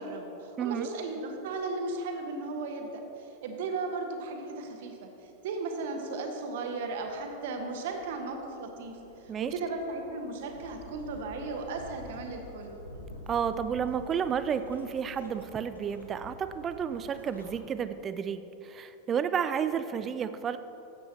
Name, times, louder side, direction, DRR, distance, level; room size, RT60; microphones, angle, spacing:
voice 1, 0.0-2.9 3.4-5.1 5.4-9.0 9.2-12.7, right 3 dB, 55° right, 4 dB, 1.0 m, -36 dB
voice 2, 0.6-0.9 9.3-9.5 13.3-20.6, right 7 dB, 25° right, 12 dB, 0.4 m, -31 dB
sound 1, 7.0-17.6, equal, 80° left, 1.2 m, -49 dB
13.0 x 7.8 x 2.9 m, 3.0 s
figure-of-eight pair, 90°, 0 cm